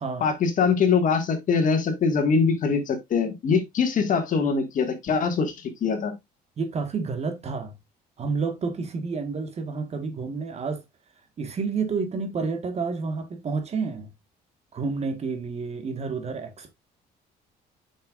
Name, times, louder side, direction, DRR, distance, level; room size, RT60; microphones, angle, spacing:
voice 1, 0.2-6.1, left 5 dB, 50° left, 1.7 m, -23 dB
voice 2, 6.6-7.7 8.2-10.8 11.4-14.1 14.7-16.7, right 4 dB, 40° right, 1.4 m, -29 dB
7.4 x 5.7 x 2.4 m
cardioid pair, 110°, 17 cm